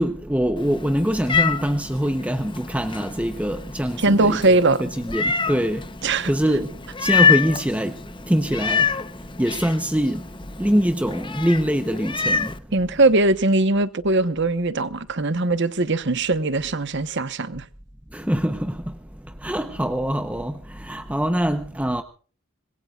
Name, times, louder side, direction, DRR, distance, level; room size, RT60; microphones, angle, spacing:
voice 1, 0.0-5.8 6.2-6.7 7.0-8.0 8.3-9.0 9.4-10.2 10.6-12.5 18.1-18.9 19.4-22.0, equal, 5° right, 0.8 m, -23 dB
Meow, 0.6-12.6, left 6 dB, 25° left, 0.9 m, -27 dB
voice 2, 4.0-4.8 6.0-6.3 12.7-17.6, right 2 dB, 55° right, 1.2 m, -20 dB
26.0 x 21.0 x 2.4 m
head